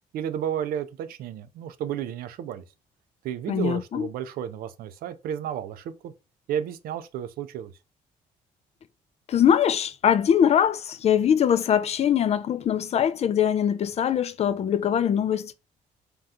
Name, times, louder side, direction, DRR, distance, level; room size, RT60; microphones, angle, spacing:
voice 1, 0.1-2.6 3.2-6.1 6.5-7.7, right 9 dB, 70° right, 0.4 m, -32 dB
voice 2, 3.5-4.1 9.3-15.5, left 9 dB, 45° left, 0.4 m, -22 dB
2.7 x 2.3 x 3.5 m
supercardioid pair, 70°, 16 cm